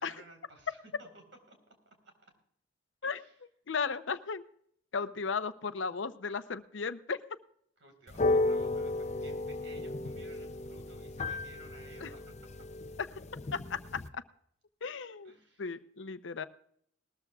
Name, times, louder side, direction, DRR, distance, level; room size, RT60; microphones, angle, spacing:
voice 1, 0.0-1.7 2.0-2.1 3.0-3.5 7.8-12.3 15.2-15.8, right 2 dB, 85° right, 4 dB, 4.3 m, -56 dB
voice 2, 3.7-4.4 4.9-7.2 12.0-12.1 13.5-13.8 14.1-14.2 14.8-15.3 15.6-16.4, left 5 dB, 90° left, 13 dB, 0.7 m, -35 dB
sound 1, 8.1-14.1, left 2 dB, 40° left, 0.6 m, -34 dB
19.5 x 13.5 x 2.4 m, 0.67 s
head